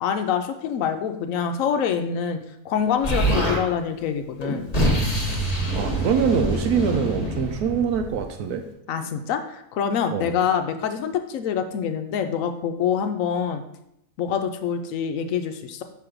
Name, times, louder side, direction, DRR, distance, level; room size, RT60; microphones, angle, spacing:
voice 1, 0.0-2.4 2.6-4.7 8.9-13.6 14.2-15.8, left 7 dB, 70° left, 8 dB, 0.8 m, -25 dB
Explosion, 3.0-3.6 4.4-8.3, right 1 dB, 25° left, 1.2 m, -25 dB
voice 2, 5.7-8.6 10.1-10.3, right 6 dB, 75° right, 6 dB, 1.0 m, -24 dB
6.0 x 3.1 x 5.0 m, 0.79 s
omnidirectional pair, 1.7 m